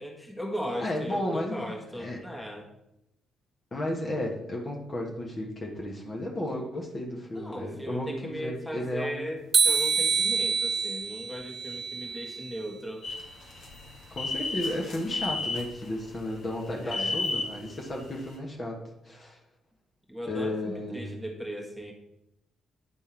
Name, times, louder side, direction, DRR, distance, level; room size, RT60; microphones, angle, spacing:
voice 1, 0.0-2.7 7.3-13.0 16.7-17.2 20.1-21.9, equal, 5° left, 0 dB, 1.6 m, -37 dB
voice 2, 0.8-1.6 2.0-2.2 3.7-9.3 14.1-18.8 19.0-19.4 20.3-21.2, left 1 dB, 35° left, -2 dB, 1.4 m, -33 dB
sound 1, 9.5-12.6, right 5 dB, 45° right, 0.4 m, -26 dB
sound 2, 13.0-16.2 16.6-17.8 18.1-18.2, left 3 dB, 55° left, 1.5 m, -33 dB
9.8 x 3.6 x 4.5 m, 0.86 s
figure-of-eight pair, 40°, 0 cm